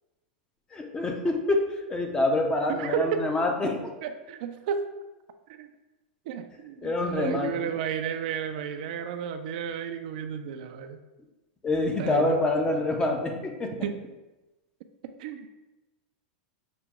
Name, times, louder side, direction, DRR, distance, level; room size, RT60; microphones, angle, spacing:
voice 1, 0.7-1.6 1.9-3.9 6.8-7.7 11.6-13.7, left 2 dB, 15° left, 3 dB, 0.5 m, -26 dB
voice 2, 2.7-3.3 4.0-4.9 5.5-5.7 6.3-11.0 12.0-12.4 13.8-14.0 15.0-15.5, right 8 dB, 60° right, 8 dB, 0.4 m, -32 dB
5.8 x 2.2 x 3.6 m, 1.1 s
supercardioid pair, 140°, 5 cm